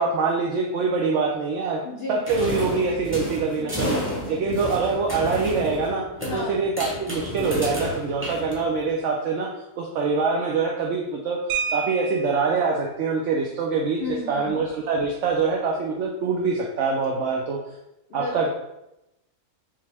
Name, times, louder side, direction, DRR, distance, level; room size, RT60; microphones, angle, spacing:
voice 1, 0.0-1.8 2.1-4.0 4.3-6.0 6.3-9.5 9.8-14.0 14.3-17.6 18.1-18.5, right 4 dB, 65° right, -1 dB, 0.7 m, -24 dB
voice 2, 1.8-2.3 3.6-4.7 6.3-6.6 14.0-14.6 18.1-18.5, left 3 dB, 55° left, -3 dB, 0.7 m, -33 dB
sound 1, 2.3-9.0, equal, 10° right, 0.7 m, -31 dB
sound 2, 11.5-12.6 14.0-14.1 14.5-14.7 15.1-15.3, right 6 dB, 90° right, 1.2 m, -30 dB
5.6 x 2.1 x 3.3 m, 0.90 s
omnidirectional pair, 1.6 m